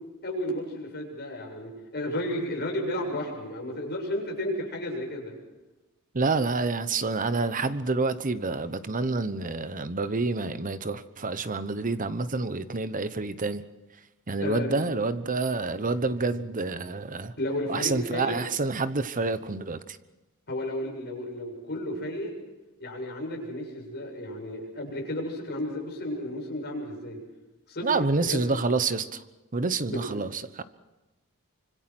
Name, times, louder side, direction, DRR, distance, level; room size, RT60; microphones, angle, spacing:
voice 1, 0.2-5.3 14.4-14.8 17.4-18.4 20.5-22.3 22.8-27.2 27.7-27.9 28.2-28.4 29.9-30.0, left 1 dB, 50° left, 0 dB, 7.4 m, -33 dB
voice 2, 6.1-13.6 14.3-17.3 17.7-20.0 27.8-29.2 29.5-30.6, right 3 dB, 35° right, 13 dB, 1.0 m, -28 dB
25.5 x 25.0 x 6.1 m, 1.1 s
head